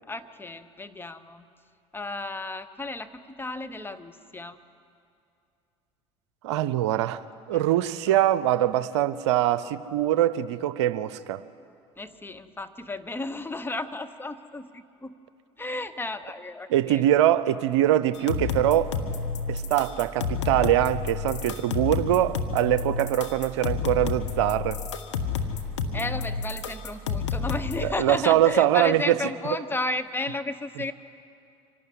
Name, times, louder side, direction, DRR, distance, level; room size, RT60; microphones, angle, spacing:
voice 1, 0.1-1.5 1.9-4.6 7.5-7.6 8.1-8.2 12.0-15.1 15.6-17.0 25.9-30.9, left 2 dB, 15° left, 10 dB, 1.1 m, -33 dB
voice 2, 6.4-7.2 7.5-11.4 16.7-18.9 19.5-24.8 27.8-29.2, right 12 dB, 75° right, 14 dB, 0.6 m, -23 dB
sound 1, 18.1-27.9, left 5 dB, 85° left, 1.2 m, -30 dB
25.5 x 12.0 x 9.6 m, 2.5 s
hypercardioid pair, 65°, 15 cm